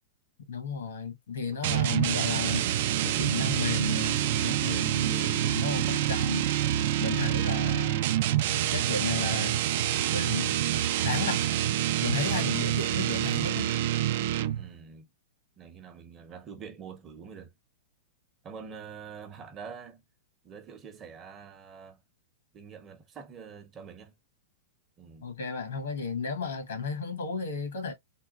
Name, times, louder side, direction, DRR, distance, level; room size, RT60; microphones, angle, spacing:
voice 1, 0.5-2.7 3.0-6.5 7.0-8.1 8.7-9.6 10.1-10.6 11.0-11.4 12.0-13.7 25.2-27.9, left 5 dB, 90° left, 1.3 m, -33 dB
sound 1, 1.6-14.7, right 12 dB, 60° right, 0.3 m, -27 dB
voice 2, 14.5-15.1 15.6-17.5 18.4-20.0 20.4-22.0 22.5-24.1 25.0-25.3, right 6 dB, 25° right, 0.7 m, -46 dB
3.7 x 2.3 x 2.4 m
hypercardioid pair, 140°, 0 cm